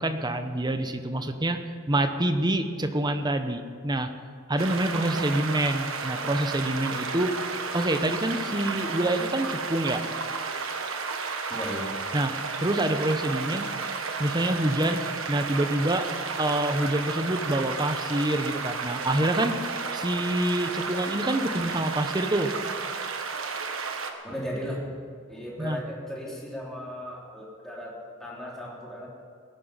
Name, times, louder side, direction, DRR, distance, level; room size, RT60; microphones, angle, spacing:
voice 1, 0.0-1.6 1.9-4.1 4.5-7.3 7.7-10.0 12.1-13.7 14.2-15.0 15.3-16.1 16.4-19.5 19.9-22.5 25.6-25.8, right 1 dB, 20° right, 8 dB, 0.9 m, -26 dB
sound 1, 4.6-24.1, right 4 dB, 80° right, 1.4 m, -32 dB
voice 2, 11.5-12.0 24.2-24.9 25.3-29.1, equal, ahead, -5 dB, 3.5 m, -36 dB
19.0 x 11.0 x 5.7 m, 2.1 s
head